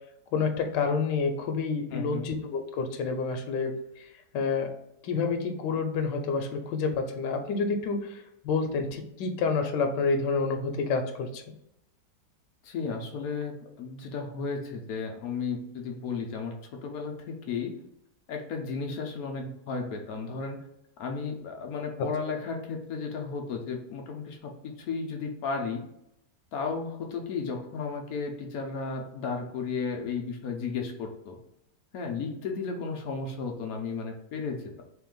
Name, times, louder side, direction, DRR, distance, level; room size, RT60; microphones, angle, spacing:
voice 1, 0.3-4.1 4.3-4.7 5.0-11.4 22.0-22.1, left 4 dB, 85° left, 5 dB, 1.3 m, -29 dB
voice 2, 1.9-2.3 12.6-17.8 18.3-20.6 21.0-25.8 26.5-31.4 31.9-34.8, left 5 dB, 65° left, 3 dB, 1.0 m, -34 dB
3.4 x 3.1 x 3.7 m, 0.82 s
omnidirectional pair, 1.8 m